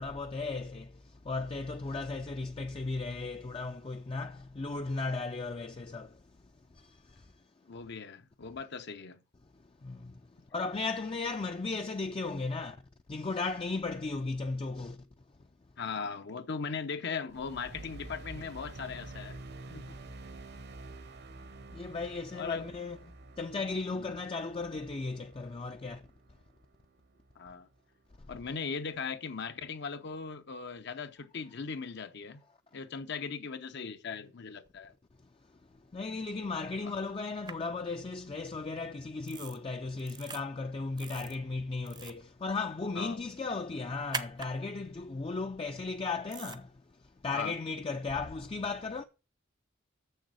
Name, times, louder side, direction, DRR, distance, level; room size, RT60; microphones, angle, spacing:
voice 1, 0.0-6.2 6.7-7.3 9.8-10.2 10.5-12.8 13.1-15.0 21.7-23.0 23.4-26.0 35.9-46.7 47.2-49.0, left 3 dB, 30° left, 0.4 m, -36 dB
voice 2, 7.7-9.2 15.8-19.4 19.7-20.0 22.3-22.6 24.0-24.2 27.4-27.7 28.3-32.4 32.7-34.9 36.8-36.9 43.0-43.2 47.3-47.6, left 5 dB, 60° left, 0.7 m, -39 dB
sound 1, 17.3-27.8, right 2 dB, 60° right, 1.0 m, -49 dB
sound 2, 37.5-37.6 39.3-39.6 40.0-40.4 41.0-41.4 41.8-42.2 44.1-44.5 46.3-46.6, right 5 dB, 20° right, 0.6 m, -40 dB
7.0 x 6.5 x 6.2 m
head